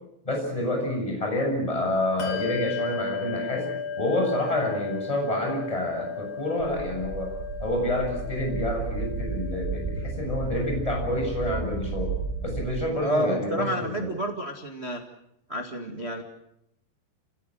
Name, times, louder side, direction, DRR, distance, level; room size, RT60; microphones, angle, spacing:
voice 1, 0.2-3.7 4.0-7.3 7.6-12.1 12.4-14.1, left 1 dB, 5° left, 1 dB, 7.0 m, -28 dB
Bell, 2.2-12.2, left 6 dB, 40° left, 3.2 m, -36 dB
sound 1, 6.6-12.7, right 4 dB, 85° right, 5.0 m, -33 dB
voice 2, 13.0-15.0 15.5-16.2, equal, 65° right, 3 dB, 0.6 m, -29 dB
28.5 x 18.0 x 7.7 m, 0.79 s
omnidirectional pair, 5.1 m